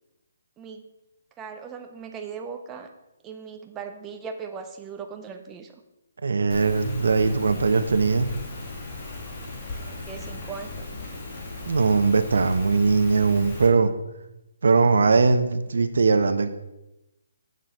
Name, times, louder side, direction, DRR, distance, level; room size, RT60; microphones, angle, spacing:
voice 1, 0.6-0.9 1.4-2.9 3.2-5.8 9.8-10.9, right 6 dB, 10° right, 5 dB, 0.5 m, -38 dB
voice 2, 6.2-8.3 11.7-13.9 14.6-16.5, right 4 dB, 65° right, 10 dB, 0.8 m, -20 dB
Rain, 6.5-13.7, left 2 dB, 20° left, 1.4 m, -37 dB
7.5 x 6.6 x 5.3 m, 0.94 s
hypercardioid pair, 180°, 0 cm